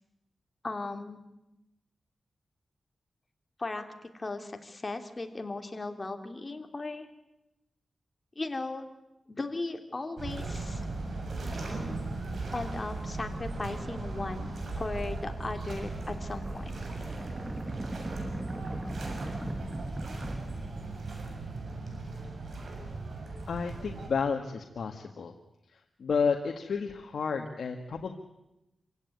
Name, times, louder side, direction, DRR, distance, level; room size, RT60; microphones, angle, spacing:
voice 1, 0.6-1.2 3.6-7.1 8.3-8.9 9.3-10.9 12.5-16.7, left 2 dB, 35° left, 6 dB, 3.0 m, -37 dB
sound 1, 10.2-24.1, right 2 dB, 65° right, 6.8 m, -37 dB
sound 2, 15.6-21.5, right 1 dB, 20° right, 1.8 m, -40 dB
voice 2, 23.5-25.3 26.0-28.1, left 5 dB, 80° left, 3 dB, 1.8 m, -31 dB
27.0 x 16.5 x 9.6 m, 0.91 s
wide cardioid pair, 80°, 0 cm